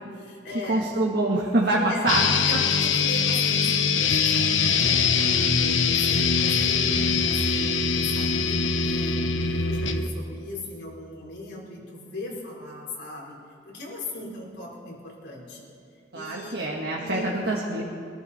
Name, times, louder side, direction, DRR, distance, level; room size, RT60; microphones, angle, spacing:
voice 1, 0.0-0.9 1.7-13.4 13.6-15.6 16.1-16.5 17.0-17.3, left 2 dB, 60° left, -4 dB, 4.3 m, -38 dB
voice 2, 0.7-2.2 2.5-2.6 16.1-17.8, right 2 dB, 55° right, -3 dB, 1.6 m, -25 dB
sound 1, 2.1-10.1, left 5 dB, 85° left, 1.0 m, -23 dB
23.5 x 13.5 x 4.3 m, 2.4 s
head